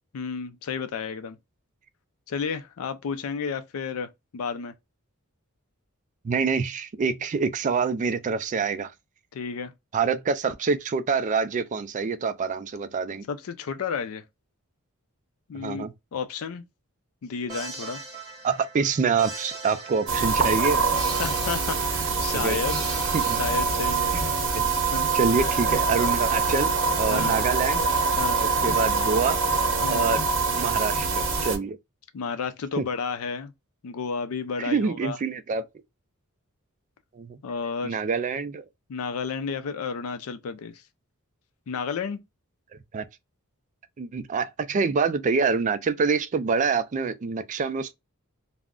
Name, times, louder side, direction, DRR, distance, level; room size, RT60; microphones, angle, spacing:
voice 1, 0.1-1.4 2.3-4.7 9.3-9.7 13.3-14.2 15.5-15.9 16.1-16.6 17.2-18.0 21.2-22.9 23.2-24.1 24.6-25.2 27.1-27.3 28.2-28.4 29.8-30.1 32.1-33.5 33.8-35.2 37.4-38.0 38.9-40.8 41.7-42.2, left 5 dB, 75° left, 0.4 m, -32 dB
voice 2, 6.2-8.9 9.9-13.3 15.5-15.9 18.4-20.8 22.3-22.6 23.1-23.4 24.1-24.2 24.5-24.6 25.1-27.8 28.4-29.4 29.9-30.2 30.5-31.8 32.8-32.9 34.6-35.6 37.1-37.4 37.8-38.6 42.9-43.0 44.0-47.9, right 5 dB, 35° right, 0.3 m, -26 dB
sound 1, 17.5-24.4, right 3 dB, 15° right, 0.9 m, -40 dB
sound 2, 20.1-31.6, right 4 dB, 60° right, 0.7 m, -24 dB
2.4 x 2.0 x 3.5 m
head